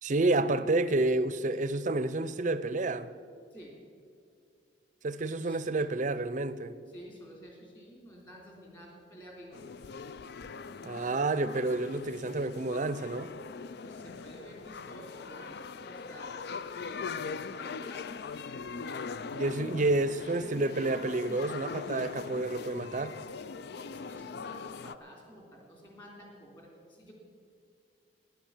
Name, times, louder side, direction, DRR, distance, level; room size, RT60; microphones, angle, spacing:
voice 1, 0.0-3.1 5.0-6.7 10.8-13.3 19.3-23.2, right 2 dB, 45° right, 0.6 m, -29 dB
voice 2, 5.3-5.6 6.9-9.6 13.8-18.1 23.7-27.1, equal, 25° left, 3.2 m, -51 dB
sound 1, 9.5-24.9, left 5 dB, 60° left, 0.4 m, -41 dB
14.5 x 10.5 x 7.2 m
head